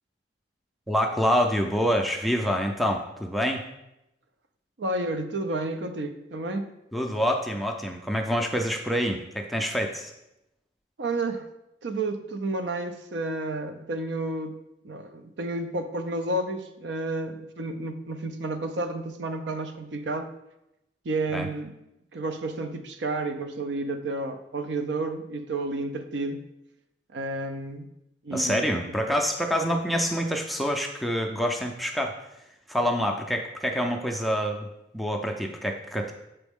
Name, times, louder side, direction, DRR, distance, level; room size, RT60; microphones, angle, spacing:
voice 1, 0.9-3.7 6.9-10.1 21.3-21.5 28.3-32.1 32.7-34.7 34.9-36.1, equal, ahead, 2 dB, 0.4 m, -26 dB
voice 2, 4.8-6.7 11.0-11.5 11.8-14.6 14.8-20.3 21.0-21.7 22.1-26.4 27.1-27.9 28.2-29.2 29.7-29.8, right 2 dB, 70° right, 8 dB, 0.5 m, -31 dB
6.9 x 4.0 x 3.6 m, 0.89 s
head